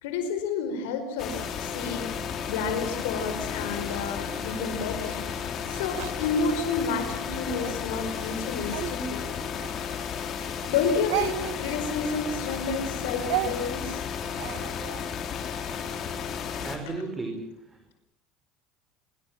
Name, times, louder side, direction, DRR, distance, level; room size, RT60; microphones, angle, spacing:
voice 1, 0.0-2.1 2.5-9.2 10.7-14.0, left 5 dB, 90° left, 7 dB, 5.1 m, -30 dB
sound 1, 1.2-16.8, left 7 dB, 45° left, 4.5 m, -33 dB
Speech, 3.8-7.0 7.5-10.4 10.6-15.0, right 17 dB, 80° right, 1.2 m, -36 dB
voice 2, 16.5-17.9, right 3 dB, 20° right, 4 dB, 5.1 m, -36 dB
25.5 x 24.0 x 7.5 m, 0.73 s
supercardioid pair, 110°, 0 cm